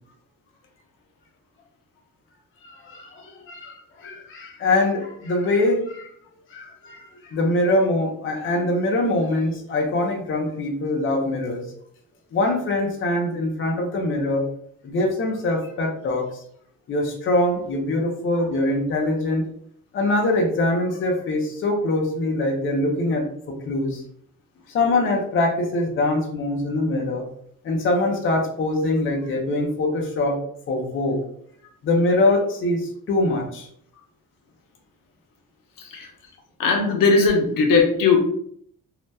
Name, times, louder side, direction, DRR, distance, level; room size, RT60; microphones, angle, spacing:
voice 1, 2.6-6.1 6.5-11.6 12.3-14.4 14.8-16.4 16.9-19.4 19.9-24.0 24.7-27.2 27.6-30.4 30.7-31.2 31.8-33.7, left 2 dB, 40° left, 0 dB, 0.5 m, -23 dB
voice 2, 35.8-36.1 36.6-38.2, left 4 dB, 80° left, 2 dB, 0.7 m, -18 dB
2.7 x 2.1 x 3.3 m, 0.65 s
wide cardioid pair, 175°, 33 cm